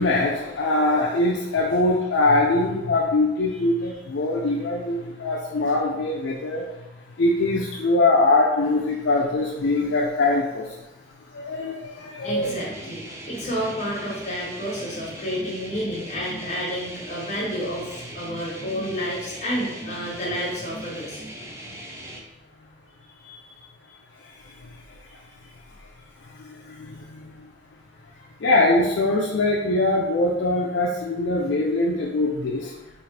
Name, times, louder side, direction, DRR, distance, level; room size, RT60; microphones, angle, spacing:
voice 1, 0.0-6.9 7.2-10.8 11.3-12.5 24.1-25.2 26.3-27.5 28.4-32.7, left 2 dB, 75° left, -2 dB, 0.4 m, -23 dB
voice 2, 12.2-21.2 23.2-23.7 28.2-28.3, equal, 40° left, -5 dB, 1.1 m, -30 dB
sound 1, 12.4-22.2, right 1 dB, 15° right, 0.4 m, -39 dB
4.0 x 2.4 x 3.2 m, 1.0 s
head